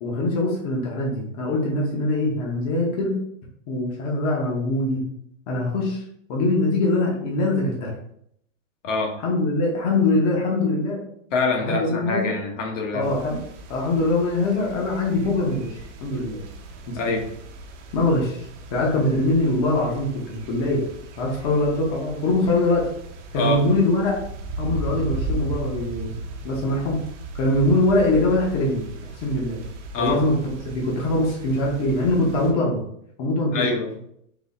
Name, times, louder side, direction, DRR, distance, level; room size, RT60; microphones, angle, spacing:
voice 1, 0.0-3.2 3.7-5.0 5.5-6.0 6.3-7.9 9.2-11.0 11.6-12.3 12.9-13.4 13.7-16.4 16.9-17.2 17.9-20.8 21.2-22.9 23.3-24.2 24.6-26.2 26.4-27.0 27.3-28.8 29.2-29.6 30.0-32.8 33.2-33.7, left 2 dB, 30° left, -2 dB, 0.7 m, -23 dB
voice 2, 8.8-9.1 11.3-13.1 16.9-17.2 23.3-23.6 29.9-30.2 33.5-33.9, left 3 dB, 65° left, 1 dB, 1.2 m, -25 dB
sound 1, 13.0-32.5, right 2 dB, 60° right, 0.9 m, -36 dB
3.9 x 2.5 x 4.0 m, 0.71 s
supercardioid pair, 170°, 40 cm